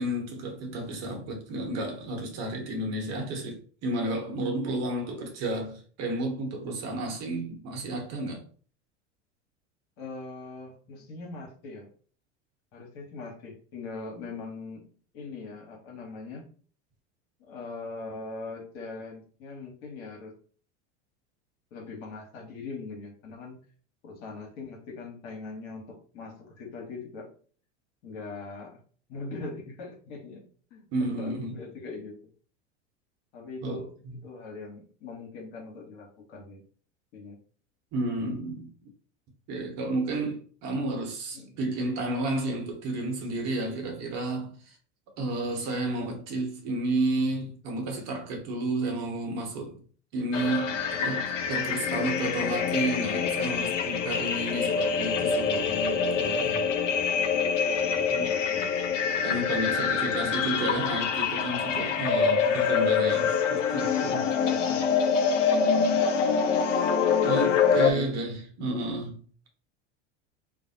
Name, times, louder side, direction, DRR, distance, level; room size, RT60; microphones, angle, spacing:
voice 1, 0.0-8.4 30.9-31.6 33.6-34.2 37.9-38.7 39.5-44.8 45.2-49.8 50.1-56.6 58.1-58.3 59.2-64.3 64.7-64.8 67.2-69.5, right 2 dB, 45° right, 1.0 m, -31 dB
voice 2, 10.0-11.9 12.7-14.9 15.1-16.5 17.4-20.4 21.7-23.6 24.0-27.3 28.0-28.8 29.1-32.2 33.3-33.9 34.2-36.6 37.1-37.4 41.3-41.6 57.8-58.7 60.0-60.4 62.1-62.4 64.4-64.7 67.3-68.1, left 3 dB, 60° left, 1.1 m, -41 dB
sound 1, 50.3-67.9, left 6 dB, 85° left, 0.5 m, -25 dB
2.5 x 2.1 x 2.7 m
hypercardioid pair, 85°, 36 cm